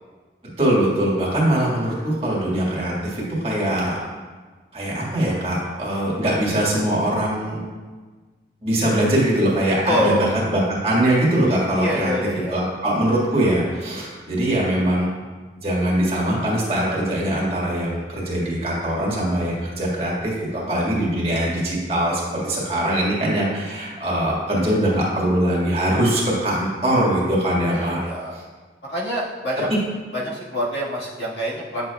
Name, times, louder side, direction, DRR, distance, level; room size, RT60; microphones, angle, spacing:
voice 1, 0.6-3.9 4.7-7.6 8.6-12.1 12.5-15.1 15.6-28.0, right 1 dB, 35° right, -5 dB, 1.7 m, -22 dB
voice 2, 9.9-10.3 11.8-12.7 27.7-28.4 28.9-29.7 30.1-31.9, equal, 85° left, -5 dB, 1.7 m, -26 dB
10.0 x 6.7 x 2.3 m, 1.4 s
head